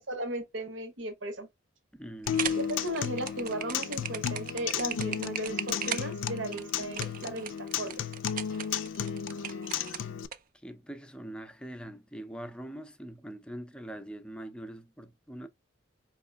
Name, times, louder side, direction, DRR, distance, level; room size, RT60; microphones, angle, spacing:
voice 1, 0.0-1.5 2.6-8.0, right 1 dB, 75° right, 1.1 m, -36 dB
voice 2, 1.9-2.8 10.6-15.5, right 1 dB, 5° left, 0.5 m, -43 dB
sound 1, 2.2-10.4, right 9 dB, 45° right, 0.4 m, -38 dB
Acoustic guitar, 2.3-10.3, left 8 dB, 80° left, 0.4 m, -34 dB
4.8 x 3.0 x 2.2 m
head